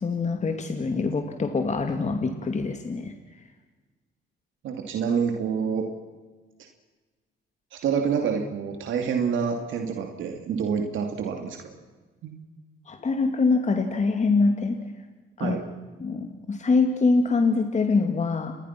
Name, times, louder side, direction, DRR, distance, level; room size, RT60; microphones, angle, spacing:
voice 1, 0.0-3.1 12.9-14.8 15.4-15.6 16.0-18.6, left 4 dB, 35° left, 5 dB, 2.3 m, -24 dB
voice 2, 4.6-5.9 7.7-11.7 12.2-12.4 15.4-15.7, right 6 dB, 75° right, 4 dB, 2.7 m, -27 dB
29.0 x 21.5 x 6.0 m, 1.3 s
cardioid pair, 90°, 20 cm